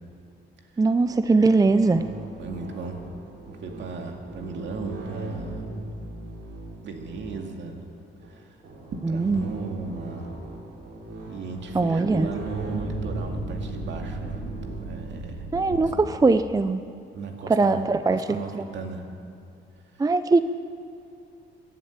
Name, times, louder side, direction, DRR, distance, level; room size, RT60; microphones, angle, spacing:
voice 1, 0.8-2.0 9.0-9.5 11.7-12.3 15.5-16.8 17.5-18.2 18.5-18.6 20.0-20.4, right 3 dB, 20° right, 11 dB, 0.5 m, -21 dB
sound 1, 1.0-7.6 8.2-8.3 8.6-15.9, right 2 dB, 85° right, 3.8 m, -37 dB
voice 2, 2.4-3.0 3.5-6.0 6.8-7.9 8.3-8.6 9.1-10.3 11.3-14.4 14.8-15.5 17.1-19.0 19.9-20.0, right 4 dB, 65° right, 3 dB, 2.1 m, -36 dB
15.0 x 11.0 x 8.8 m, 2.5 s
cardioid pair, 90°, 20 cm